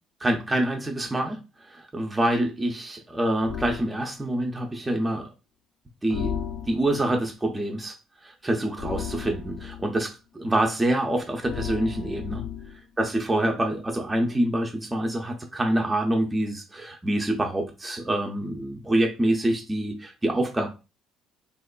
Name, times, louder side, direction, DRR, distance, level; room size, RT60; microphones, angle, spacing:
voice 1, 0.2-5.3 6.0-6.4 6.7-8.0 8.2-12.4 13.0-20.7, right 1 dB, 15° right, 2 dB, 0.4 m, -26 dB
sound 1, 3.4-3.9 6.1-7.0 8.8-9.9 11.4-12.8, left 8 dB, 75° left, 0.6 m, -34 dB
2.9 x 2.2 x 2.2 m, 0.30 s
cardioid pair, 105°, 0 cm